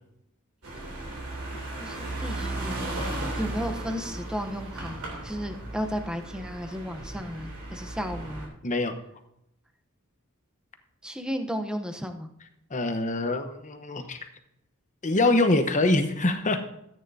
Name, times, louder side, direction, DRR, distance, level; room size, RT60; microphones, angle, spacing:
sound 1, 0.6-8.5, right 2 dB, 70° right, 3.0 m, -35 dB
voice 1, 1.8-2.9 3.4-8.5 11.0-12.3, equal, 5° right, 6 dB, 0.8 m, -34 dB
voice 2, 8.6-8.9 12.7-14.2 15.0-16.6, left 2 dB, 35° left, 7 dB, 0.9 m, -24 dB
13.5 x 9.2 x 2.7 m, 0.78 s
head